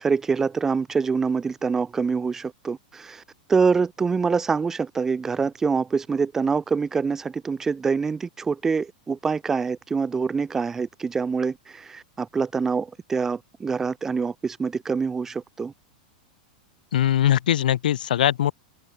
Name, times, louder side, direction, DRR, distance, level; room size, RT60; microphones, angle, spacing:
voice 1, 0.0-3.2 3.5-15.7, right 5 dB, 10° right, 6.8 m, -25 dB
voice 2, 16.9-18.5, left 11 dB, 85° left, 4.0 m, -21 dB
open air
supercardioid pair, 175°, 5 cm